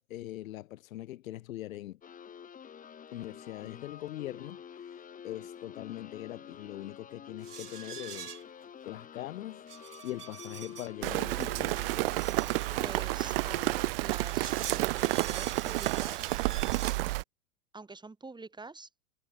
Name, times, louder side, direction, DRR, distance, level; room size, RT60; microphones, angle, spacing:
voice 1, 0.0-2.0 3.1-4.6 5.2-8.4 8.9-11.8, left 15 dB, 60° left, 5.6 m, -41 dB
sound 1, 2.0-13.9, left 8 dB, 20° left, 1.6 m, -48 dB
sound 2, 7.4-8.6 9.7-10.9 11.3-12.8 14.0-17.0, right 8 dB, 85° right, 1.1 m, -44 dB
Rain, 11.0-17.2, right 21 dB, 40° right, 0.4 m, -30 dB
voice 2, 12.8-16.3 17.7-18.9, right 3 dB, 10° right, 5.5 m, -46 dB
hypercardioid pair, 100°, 45 cm